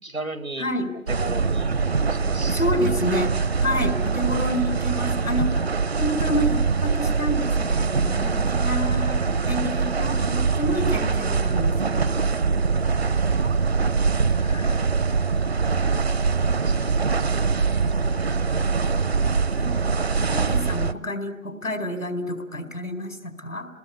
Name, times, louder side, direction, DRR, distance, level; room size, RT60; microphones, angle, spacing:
voice 1, 0.0-0.7 1.1-1.7 2.1-3.3 16.6-16.7, right 2 dB, 85° right, 13 dB, 2.4 m, -35 dB
voice 2, 0.6-0.9 2.5-5.7 6.0-12.1 14.4-14.8 19.6-19.8 20.3-23.7, equal, 90° left, 8 dB, 4.7 m, -29 dB
sound 1, 1.1-20.9, right 4 dB, 50° right, 0.9 m, -23 dB
29.5 x 20.0 x 8.4 m, 0.77 s
figure-of-eight pair, 150°, 40 cm